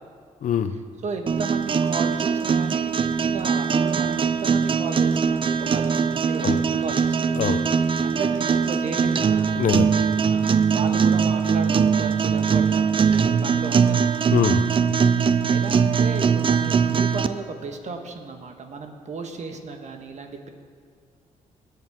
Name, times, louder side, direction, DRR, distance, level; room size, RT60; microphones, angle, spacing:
voice 1, 0.4-0.7 6.4-6.6 7.3-7.6 9.5-9.9 14.3-14.6, left 8 dB, 65° left, 10 dB, 0.7 m, -23 dB
voice 2, 1.0-2.9 3.2-7.2 8.0-9.5 10.3-14.1 15.0-20.5, right 4 dB, 55° right, 4 dB, 1.5 m, -34 dB
sound 1, 1.3-17.3, right 6 dB, 40° right, 0.5 m, -21 dB
19.5 x 8.1 x 3.7 m, 2.2 s
cardioid pair, 75°, 14 cm